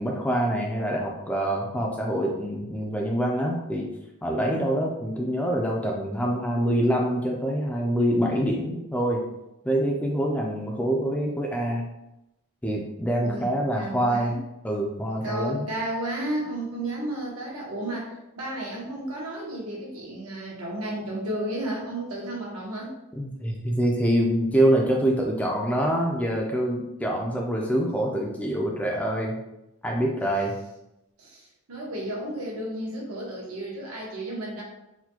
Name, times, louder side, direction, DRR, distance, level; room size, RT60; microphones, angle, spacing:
voice 1, 0.0-3.9 4.2-9.2 9.6-11.8 12.6-14.4 14.6-15.7 23.1-29.4 29.8-30.5, right 1 dB, 5° left, -1 dB, 0.3 m, -25 dB
voice 2, 13.2-14.4 15.2-22.9 31.2-34.6, right 1 dB, 85° right, -3 dB, 1.1 m, -33 dB
4.2 x 2.2 x 2.8 m, 0.91 s
head